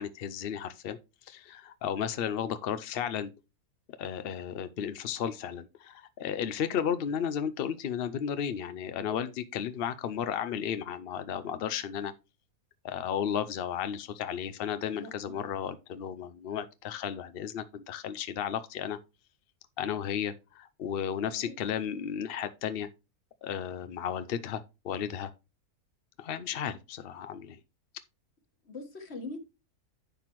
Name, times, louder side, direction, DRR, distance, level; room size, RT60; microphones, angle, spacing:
voice 1, 0.0-3.3 4.0-12.1 12.8-19.0 19.8-22.9 23.4-25.3 26.2-27.6, left 8 dB, 65° left, 0.6 m, -34 dB
voice 2, 14.9-15.4 21.3-21.7 28.6-29.4, left 2 dB, 45° left, 1.7 m, -42 dB
10.5 x 5.9 x 3.0 m
omnidirectional pair, 1.6 m